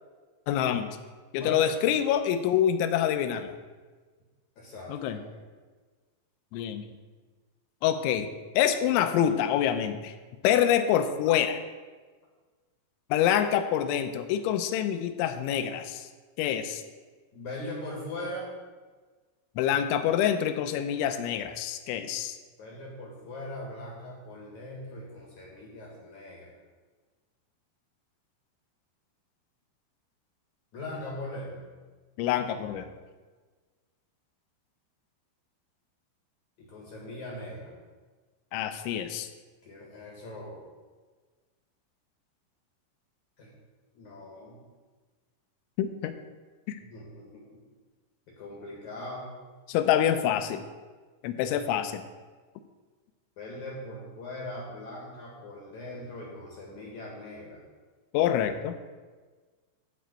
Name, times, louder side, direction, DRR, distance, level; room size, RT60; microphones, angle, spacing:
voice 1, 0.5-0.9 1.3-3.5 4.9-5.2 6.5-6.9 7.8-10.1 10.4-11.6 13.1-16.1 16.4-16.8 19.6-22.4 32.2-32.9 38.5-39.3 45.8-46.1 46.7-46.8 49.7-50.6 51.2-52.0 58.1-58.7, left 10 dB, 85° left, 8 dB, 2.8 m, -26 dB
voice 2, 1.3-2.0 4.6-5.4 17.3-18.5 22.6-26.5 30.7-31.7 36.6-37.7 39.6-40.6 43.4-43.5 43.9-44.6 46.9-47.5 48.3-49.3 53.4-57.6, left 1 dB, 65° left, -3 dB, 1.9 m, -40 dB
11.5 x 4.6 x 8.0 m, 1.4 s
omnidirectional pair, 5.9 m